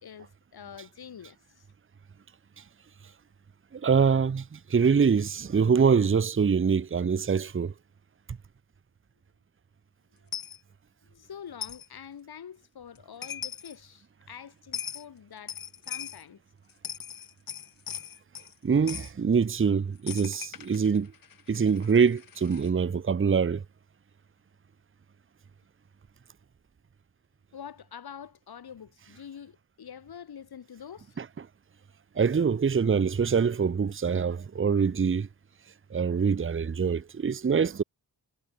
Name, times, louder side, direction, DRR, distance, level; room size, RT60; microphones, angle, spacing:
voice 1, 0.0-1.7 11.0-15.6 15.9-16.4 27.5-31.2, left 8 dB, 85° left, 2.4 m, -46 dB
voice 2, 3.7-7.7 18.6-21.1 21.5-23.6 31.2-31.3 32.2-35.3 35.9-37.8, right 6 dB, 35° right, 0.9 m, -24 dB
Coin (dropping), 10.3-10.6 11.6-11.9 13.0-13.1 13.2-13.8 14.7-15.0 15.5-16.2 16.7-18.5 18.9-19.1 20.1-22.7, left 8 dB, 65° left, 1.0 m, -39 dB
wide cardioid pair, 110°, 37 cm